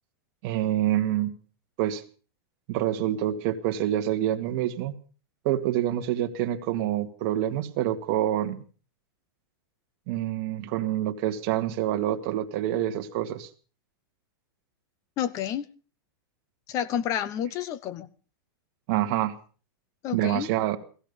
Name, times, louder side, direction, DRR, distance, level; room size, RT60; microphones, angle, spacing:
voice 1, 0.4-1.3 1.8-2.0 2.7-5.0 5.4-8.6 10.1-13.5 18.9-19.3 20.1-20.8, right 12 dB, 40° right, 5 dB, 2.0 m, -27 dB
voice 2, 15.2-15.6 16.7-18.1 20.0-20.5, left 10 dB, 30° left, 17 dB, 1.0 m, -29 dB
16.0 x 16.0 x 5.4 m, 0.39 s
supercardioid pair, 160°, 12 cm